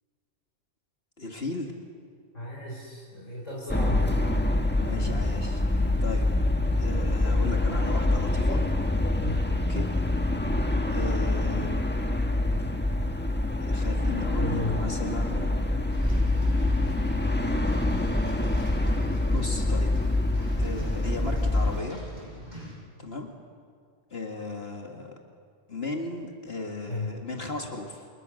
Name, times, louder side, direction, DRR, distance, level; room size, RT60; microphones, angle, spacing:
voice 1, 1.2-1.7 4.8-6.3 6.8-8.6 9.7-9.9 10.9-11.8 13.6-15.5 19.3-19.9 20.6-22.0 23.0-23.3 24.1-25.1 25.7-28.1, left 3 dB, 55° left, 2 dB, 2.3 m, -36 dB
voice 2, 2.3-4.1 9.2-9.5 14.4-14.8 26.9-27.1, left 1 dB, 85° left, -3 dB, 4.9 m, -34 dB
sound 1, 3.7-21.8, left 2 dB, 10° left, 1.4 m, -25 dB
sound 2, 15.9-22.7, equal, 35° right, 8.4 m, -44 dB
29.0 x 28.5 x 6.5 m, 2.2 s
omnidirectional pair, 1.3 m